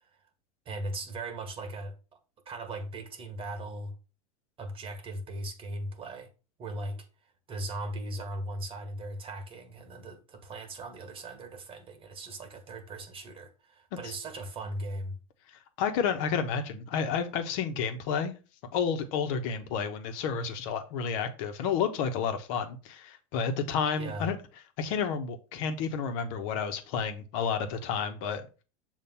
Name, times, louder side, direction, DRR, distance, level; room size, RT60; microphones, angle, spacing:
voice 1, 0.6-2.2 2.4-3.9 4.6-6.3 6.6-7.1 7.5-15.2 24.0-24.3, right 1 dB, 30° right, 1.6 m, -38 dB
voice 2, 15.8-18.3 18.7-24.4 24.8-28.4, left 6 dB, 65° left, 1.3 m, -30 dB
7.0 x 2.9 x 5.7 m
supercardioid pair, 105°, 18 cm